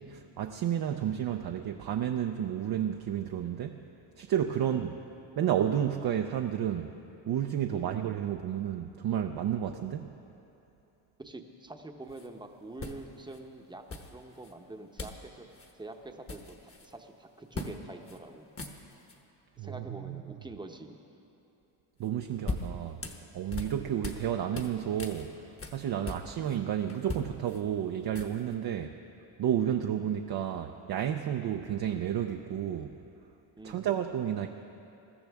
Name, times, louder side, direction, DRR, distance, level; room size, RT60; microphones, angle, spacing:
voice 1, 0.0-3.8 4.2-5.0 5.4-6.9 7.3-10.1 19.6-20.2 22.0-23.0 23.3-25.3 25.7-28.9 29.4-33.0 33.6-34.5, right 10 dB, 55° right, 4 dB, 0.6 m, -31 dB
voice 2, 11.2-15.5 15.7-18.5 19.6-21.0 25.9-26.3 29.7-29.9 33.6-33.9, right 2 dB, 10° right, 4 dB, 0.9 m, -46 dB
sound 1, 12.1-12.3 12.8-13.4 13.9-14.5 15.0-15.3 15.5-15.7 16.0-16.9 17.5-17.8 18.1-18.2 18.5-19.2 22.0-24.3 24.5-26.6 26.9-28.5, left 3 dB, 30° left, 1.2 m, -40 dB
22.0 x 13.5 x 3.5 m, 2.9 s
cardioid pair, 115°, 46 cm